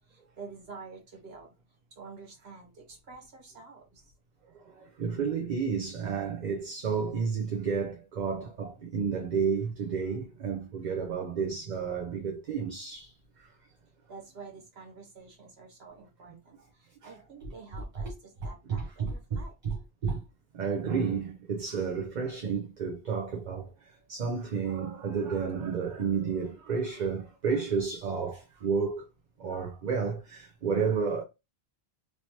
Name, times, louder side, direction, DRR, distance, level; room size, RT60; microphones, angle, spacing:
voice 1, 0.1-1.5 2.0-4.0 14.1-16.6 17.0-19.5, right 4 dB, 75° right, 1.5 m, -48 dB
voice 2, 4.5-13.5 16.3-16.4 17.0-18.1 18.6-20.2 20.5-29.1 29.4-31.2, right 5 dB, 50° right, 0.7 m, -31 dB
3.1 x 2.9 x 2.8 m
omnidirectional pair, 1.1 m